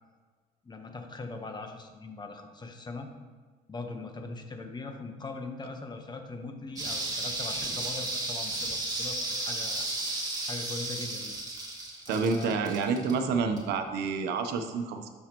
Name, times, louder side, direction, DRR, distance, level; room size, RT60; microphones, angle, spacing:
voice 1, 0.6-3.1 3.7-10.2 10.5-11.4 12.1-12.6, left 3 dB, 25° left, 5 dB, 1.1 m, -41 dB
sound 1, 6.8-13.8 14.1-14.2, right 2 dB, 20° right, 2.0 m, -34 dB
voice 2, 12.1-15.1, right 5 dB, 80° right, 6 dB, 0.9 m, -28 dB
12.5 x 6.5 x 3.0 m, 1.4 s
cardioid pair, 110°, 17 cm